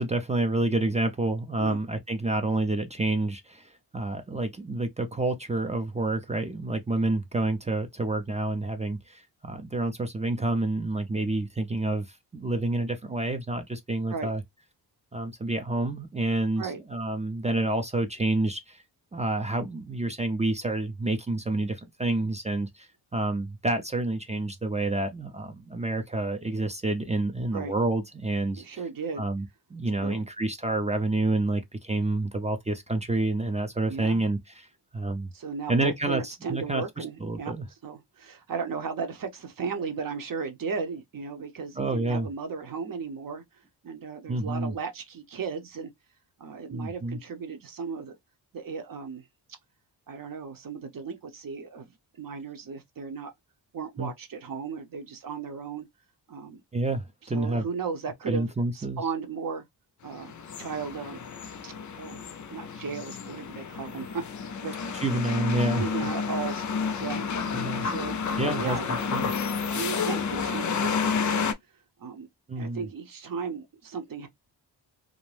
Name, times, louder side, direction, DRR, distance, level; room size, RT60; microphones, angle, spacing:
voice 1, 0.0-12.1 12.3-14.4 15.1-18.8 19.1-28.6 29.2-34.7 34.9-35.3 35.7-37.6 41.8-42.3 44.3-44.7 46.7-47.2 54.0-54.1 56.7-57.6 58.3-59.0 64.9-65.9 67.5-67.9 68.4-69.3 72.5-72.9, right 2 dB, 15° right, 0.4 m, -28 dB
voice 2, 28.6-29.3 30.0-30.2 33.9-34.2 35.3-37.5 37.8-43.4 43.8-45.9 46.4-48.2 48.5-49.2 50.1-51.9 52.2-53.3 53.7-55.9 56.3-56.6 57.3-59.6 60.0-60.3 60.6-61.2 61.6-64.2 64.6-64.8 65.8-67.3 67.8-68.2 68.4-68.9 69.7-71.5 72.0-72.3 72.6-74.3, right 5 dB, 50° right, 0.7 m, -35 dB
sound 1, 60.1-71.5, left 5 dB, 45° left, 0.5 m, -30 dB
2.5 x 2.1 x 3.2 m
wide cardioid pair, 115°, 43 cm